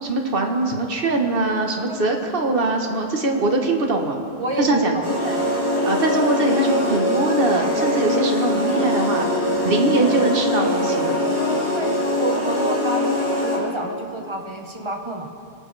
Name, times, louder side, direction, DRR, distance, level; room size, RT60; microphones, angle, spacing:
voice 1, 0.0-4.2 4.6-5.0 5.2-5.4 5.8-9.3 9.6-11.2, right 2 dB, 65° right, 2 dB, 1.4 m, -22 dB
voice 2, 4.4-5.0 11.7-11.9 12.2-13.1 13.4-15.4, right 2 dB, 30° right, 2 dB, 1.1 m, -28 dB
sound 1, 5.0-13.8, left 1 dB, 75° left, 4.1 m, -22 dB
26.0 x 8.7 x 3.3 m, 2.6 s
omnidirectional pair, 1.0 m